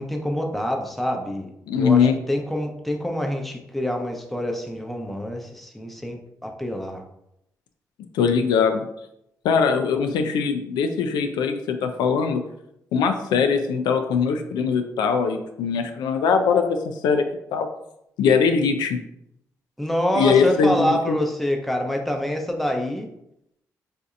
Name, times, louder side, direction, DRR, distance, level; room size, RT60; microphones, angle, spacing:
voice 1, 0.0-7.0 19.8-23.1, equal, ahead, 2 dB, 0.7 m, -26 dB
voice 2, 1.7-2.1 8.1-8.9 9.4-12.4 12.9-17.2 17.5-17.7 18.2-19.0 20.1-21.2, left 6 dB, 85° left, 7 dB, 0.4 m, -21 dB
4.2 x 2.7 x 2.5 m, 0.80 s
supercardioid pair, 55°, 7 cm